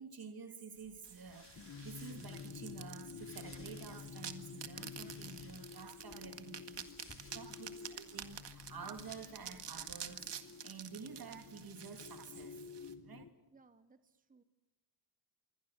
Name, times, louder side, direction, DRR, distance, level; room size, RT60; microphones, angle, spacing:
voice 1, 0.0-12.6 13.0-13.3, right 5 dB, 60° right, 2.9 m, -50 dB
sound 1, 0.7-10.1, left 3 dB, 30° left, 4.8 m, -62 dB
sound 2, 1.0-12.9, right 8 dB, 90° right, 1.9 m, -49 dB
sound 3, 1.6-13.3, left 6 dB, 50° left, 1.4 m, -51 dB
voice 2, 7.3-7.8 13.5-14.4, right 4 dB, 20° right, 0.9 m, -65 dB
26.5 x 24.5 x 6.6 m
wide cardioid pair, 140°, 41 cm